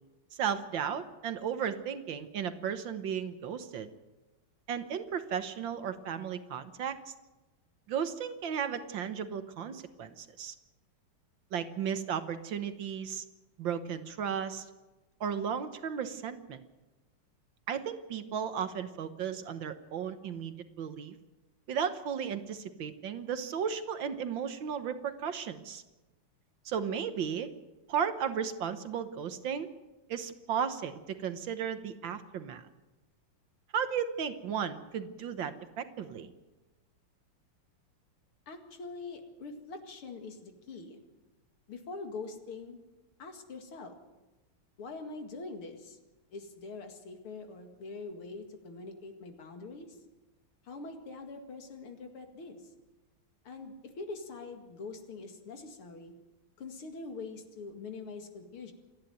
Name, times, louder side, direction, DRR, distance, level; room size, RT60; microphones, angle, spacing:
voice 1, 0.3-3.9 4.7-7.1 7.9-10.5 11.5-13.2 13.6-14.7 15.2-16.6 17.7-21.1 21.7-25.8 26.6-27.5 27.9-29.7 30.1-32.6 33.7-36.3, right 7 dB, 65° right, 10 dB, 1.7 m, -35 dB
voice 2, 38.5-41.0 41.7-42.8 43.2-44.0 44.8-46.0 46.3-50.0 50.6-52.6 53.4-56.1 56.6-58.7, left 3 dB, 75° left, 5 dB, 3.0 m, -44 dB
28.0 x 10.5 x 9.2 m, 1.1 s
omnidirectional pair, 2.4 m